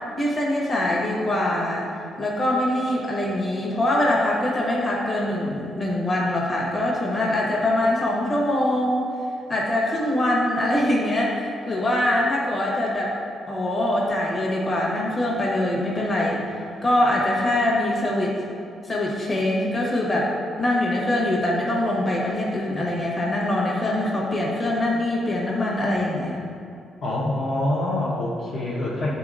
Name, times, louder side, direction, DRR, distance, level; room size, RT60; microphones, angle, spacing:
voice 1, 0.2-1.9 2.2-9.0 9.5-13.1 13.5-16.4 16.8-18.3 18.9-20.3 20.6-26.4, left 1 dB, 20° left, -4 dB, 1.1 m, -23 dB
voice 2, 27.0-29.1, left 1 dB, 45° left, -6 dB, 0.8 m, -25 dB
11.5 x 4.0 x 2.5 m, 2.6 s
cardioid pair, 180°, 0 cm